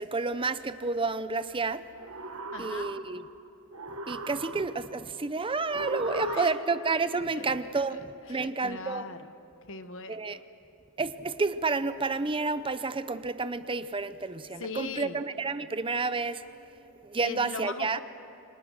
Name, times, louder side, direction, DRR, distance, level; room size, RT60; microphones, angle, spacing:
voice 1, 0.0-1.8 2.6-3.2 4.1-9.1 10.1-10.4 11.0-16.4 17.0-18.0, right 3 dB, 25° right, 13 dB, 0.7 m, -30 dB
sound 1, 1.9-3.4 3.7-5.0 5.7-7.0, right 2 dB, 70° right, 1.4 m, -38 dB
voice 2, 2.5-2.9 6.0-6.5 7.3-8.0 8.3-9.3 9.7-10.3 14.6-15.2 17.2-18.0, left 4 dB, 65° left, 10 dB, 1.2 m, -40 dB
30.0 x 25.5 x 6.6 m, 2.7 s
head